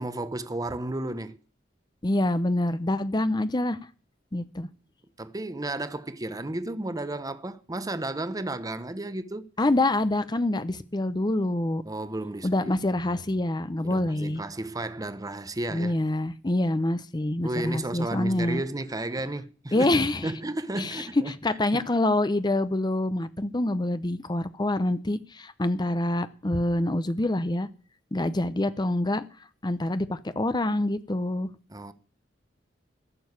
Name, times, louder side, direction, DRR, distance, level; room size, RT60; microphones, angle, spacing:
voice 1, 0.0-1.4 5.2-9.5 11.8-12.7 13.8-16.0 17.4-20.0 20.2-21.3 21.7-21.8 31.7-31.9, right 1 dB, 20° right, 0.8 m, -33 dB
voice 2, 2.0-3.8 4.3-4.7 9.6-11.8 12.4-14.4 15.7-18.6 19.7-20.3 20.8-27.7 28.1-29.2 29.6-31.5, left 1 dB, 25° left, 0.7 m, -26 dB
13.5 x 7.0 x 9.6 m
head